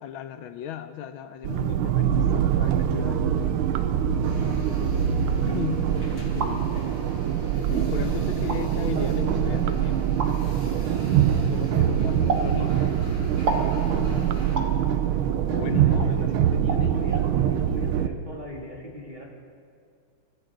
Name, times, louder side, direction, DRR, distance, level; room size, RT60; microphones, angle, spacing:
voice 1, 0.0-3.4 5.4-6.7 7.7-10.0 11.4-12.8 15.5-17.1, left 10 dB, 80° left, 10 dB, 1.4 m, -36 dB
sound 1, 1.4-18.1, right 9 dB, 85° right, 1.5 m, -24 dB
voice 2, 2.9-3.5 4.4-5.2 6.1-6.7 11.7-12.3 15.5-16.4 16.7-19.3, left 1 dB, 20° right, -3 dB, 2.7 m, -40 dB
sound 2, 4.2-14.6, left 3 dB, 45° left, 4.3 m, -46 dB
sound 3, 6.1-6.6 7.4-7.5 8.4-8.6 10.2-10.3 12.3-12.5 13.5-13.7 14.6-14.8 16.0-16.1 16.7-16.8 17.1-17.3, right 3 dB, 50° right, 1.8 m, -28 dB
25.0 x 14.0 x 3.8 m, 2.4 s
omnidirectional pair, 2.3 m